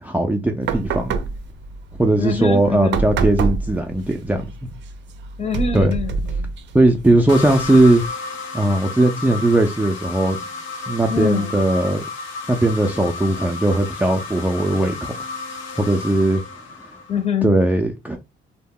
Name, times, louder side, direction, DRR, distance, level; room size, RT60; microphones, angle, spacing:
voice 1, 0.0-1.2 2.0-4.5 5.7-5.9 6.7-8.0 8.5-10.4 10.9-12.0 12.5-15.1 15.8-16.4 17.4-18.2, right 1 dB, 10° right, 0.4 m, -18 dB
sound 1, 0.6-8.1, right 4 dB, 65° right, 0.4 m, -28 dB
voice 2, 2.2-3.1 5.4-6.5 11.1-11.6 17.1-17.5, left 6 dB, 35° left, 0.7 m, -24 dB
sound 2, 7.3-17.3, left 4 dB, 85° left, 0.7 m, -32 dB
2.1 x 2.0 x 3.6 m
cardioid pair, 90°, 20 cm